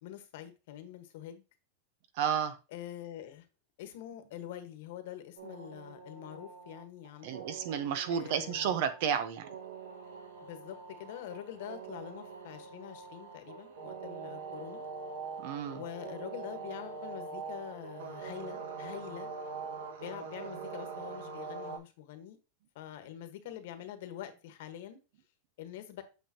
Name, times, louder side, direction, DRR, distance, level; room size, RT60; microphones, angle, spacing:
voice 1, 0.0-1.4 2.7-3.4 3.8-7.4 8.1-8.8 10.4-14.8 15.7-19.3 20.0-22.4 22.7-25.0 25.6-26.0, left 11 dB, 65° left, 8 dB, 1.4 m, -45 dB
voice 2, 2.2-2.5 7.2-9.5 15.4-15.8, right 8 dB, 55° right, 11 dB, 1.0 m, -31 dB
sound 1, 5.4-21.8, right 5 dB, 85° right, 1.7 m, -44 dB
8.4 x 5.5 x 2.9 m, 0.30 s
supercardioid pair, 155°, 0 cm